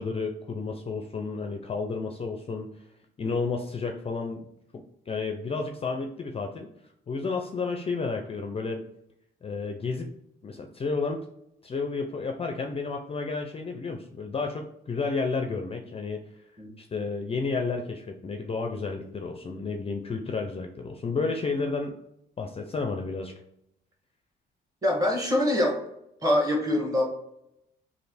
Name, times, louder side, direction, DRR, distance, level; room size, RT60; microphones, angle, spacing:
voice 1, 0.0-2.7 3.2-4.4 4.7-6.7 7.1-8.8 9.4-10.1 10.4-11.3 11.6-16.2 16.8-22.0 22.4-23.3, left 4 dB, 30° left, 4 dB, 0.4 m, -31 dB
voice 2, 24.8-25.8 26.2-27.0, left 1 dB, 20° right, 0 dB, 1.3 m, -24 dB
3.2 x 2.5 x 4.0 m, 0.79 s
cardioid pair, 90°, 20 cm